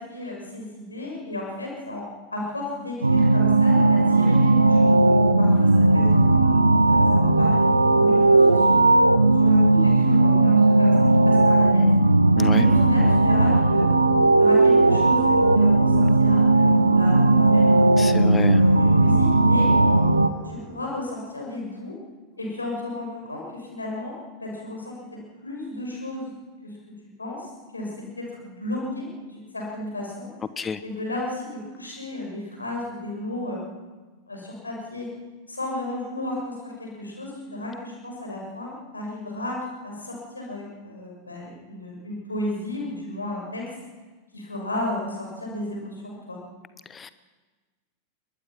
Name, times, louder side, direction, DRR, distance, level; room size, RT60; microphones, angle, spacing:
voice 1, 0.0-6.5 6.9-8.9 9.4-11.9 12.5-13.9 14.4-19.7 20.4-22.0 22.4-25.0 25.4-26.3 26.6-26.8 27.2-30.3 30.8-33.6 34.3-35.1 35.5-43.7 44.3-46.4, left 1 dB, 80° left, -1 dB, 6.5 m, -34 dB
sound 1, 3.0-20.3, right 2 dB, 80° right, 1.1 m, -17 dB
sound 2, 8.4-20.9, left 2 dB, 45° left, 7.3 m, -42 dB
voice 2, 18.0-18.6 30.6-30.8 46.9-47.1, left 5 dB, 20° left, 14 dB, 0.9 m, -29 dB
22.5 x 21.0 x 5.9 m, 1.3 s
figure-of-eight pair, 90°, 0 cm